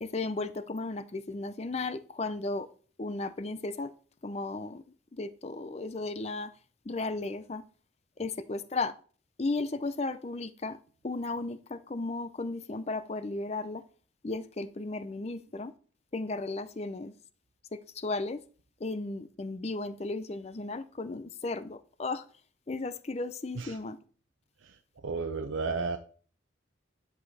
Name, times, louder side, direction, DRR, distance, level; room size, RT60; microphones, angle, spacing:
voice 1, 0.0-2.7 3.0-3.9 4.2-6.5 6.9-7.6 8.2-8.9 9.4-10.8 11.0-13.8 14.2-15.7 16.1-17.1 17.7-18.4 18.8-22.2 22.7-24.0, left 3 dB, 35° left, 0.5 m, -35 dB
voice 2, 25.0-26.0, right 4 dB, 85° right, 0.6 m, -32 dB
10.0 x 4.8 x 4.2 m
head